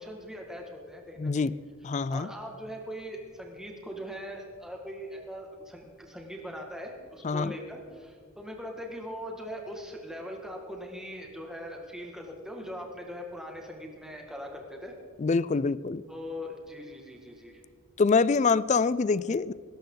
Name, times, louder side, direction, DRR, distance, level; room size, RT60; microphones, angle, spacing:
voice 1, 0.0-1.5 2.1-14.9 16.1-17.6, equal, 5° right, 1 dB, 2.0 m, -41 dB
voice 2, 1.2-1.5 1.8-2.3 7.2-7.5 15.2-16.0 18.0-19.5, left 4 dB, 35° left, 18 dB, 0.4 m, -25 dB
19.5 x 18.0 x 4.0 m, 2.2 s
head